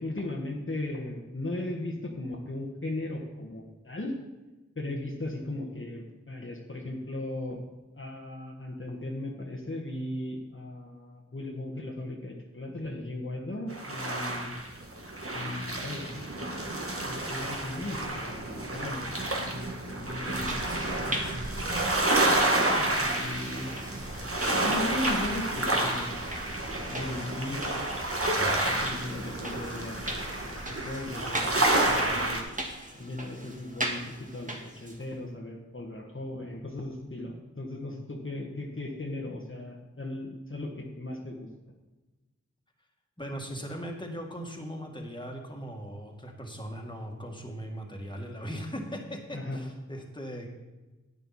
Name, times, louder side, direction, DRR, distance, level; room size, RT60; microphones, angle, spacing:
voice 1, 0.0-4.2 4.7-7.7 8.0-14.6 15.3-16.1 16.6-16.7 17.0-20.5 22.4-23.7 24.6-26.4 26.9-27.6 28.6-30.2 30.4-32.4 32.9-41.5 49.3-49.6, left 1 dB, 40° left, -1 dB, 1.5 m, -37 dB
sound 1, 13.7-32.4, right 1 dB, 45° right, 1.9 m, -29 dB
sound 2, 20.1-35.1, right 1 dB, 25° right, 1.8 m, -40 dB
voice 2, 43.2-50.5, equal, 15° left, 0 dB, 2.1 m, -39 dB
10.5 x 8.9 x 4.2 m, 1.2 s
wide cardioid pair, 50°, 31 cm